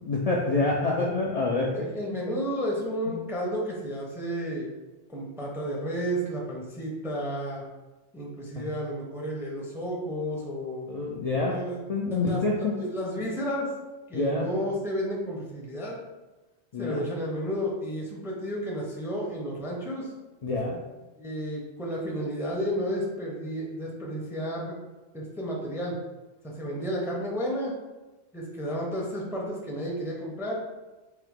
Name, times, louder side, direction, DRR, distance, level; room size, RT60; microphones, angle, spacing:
voice 1, 0.0-1.9 2.2-2.4 3.1-3.2 8.6-8.7 10.9-11.6 11.9-12.8 14.1-14.5 16.7-17.0 20.4-20.8, left 3 dB, 75° left, -2 dB, 0.3 m, -27 dB
voice 2, 1.7-4.7 5.1-7.6 8.1-10.9 11.5-11.8 12.1-12.4 12.8-13.7 14.1-16.0 16.8-20.1 21.2-24.7 25.1-26.0 26.6-27.7 28.3-30.6, equal, 5° right, -3 dB, 0.4 m, -32 dB
3.6 x 2.7 x 3.5 m, 1.1 s
omnidirectional pair, 1.2 m